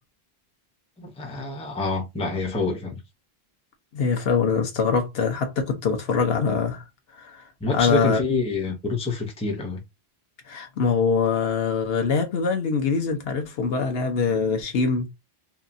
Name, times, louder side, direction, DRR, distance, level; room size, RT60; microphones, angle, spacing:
voice 1, 1.0-3.0 7.6-9.8, left 3 dB, 10° left, 0.5 m, -27 dB
voice 2, 3.9-6.8 7.2-7.4 7.7-8.2 10.5-15.1, left 5 dB, 75° left, 0.9 m, -23 dB
2.8 x 2.3 x 2.5 m
omnidirectional pair, 1.0 m